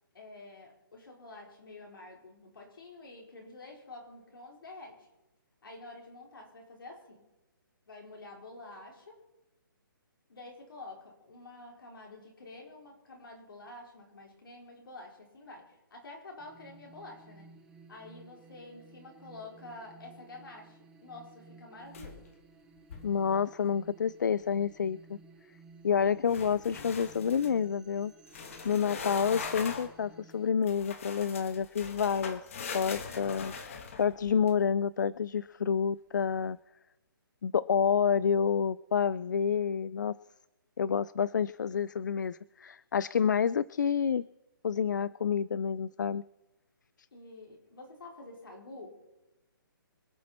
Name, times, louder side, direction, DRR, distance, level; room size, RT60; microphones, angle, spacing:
voice 1, 0.1-5.1 5.6-7.2 7.9-9.2 10.3-17.5 17.9-22.3 47.1-49.0, left 2 dB, 70° left, 0 dB, 4.6 m, -49 dB
sound 1, 16.4-30.5, right 3 dB, 5° right, 0.7 m, -56 dB
sound 2, 21.9-22.4 22.8-23.2 26.3-27.6 28.3-30.0 30.7-34.5, left 5 dB, 35° left, 1.5 m, -41 dB
voice 2, 23.0-25.2 25.8-28.1 28.6-32.4 32.7-36.6 37.4-40.2 40.8-44.3 44.6-46.2, left 7 dB, 55° left, 20 dB, 0.4 m, -29 dB
25.5 x 8.6 x 4.3 m, 1.0 s
hypercardioid pair, 170°, 12 cm